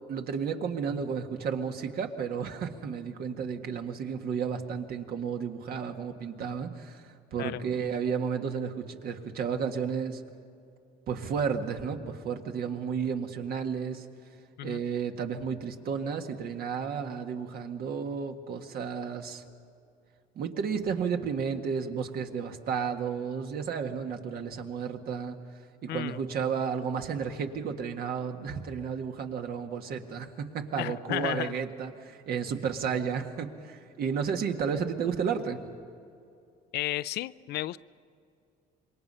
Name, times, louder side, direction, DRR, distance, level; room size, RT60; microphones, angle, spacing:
voice 1, 0.1-10.2 11.1-14.1 14.6-19.4 20.4-25.4 25.8-35.6, right 6 dB, 65° right, 4 dB, 1.8 m, -32 dB
voice 2, 25.9-26.2 30.8-31.5 36.7-37.8, left 15 dB, 75° left, 16 dB, 0.5 m, -33 dB
27.0 x 22.5 x 5.6 m, 2.5 s
cardioid pair, 110°, 17 cm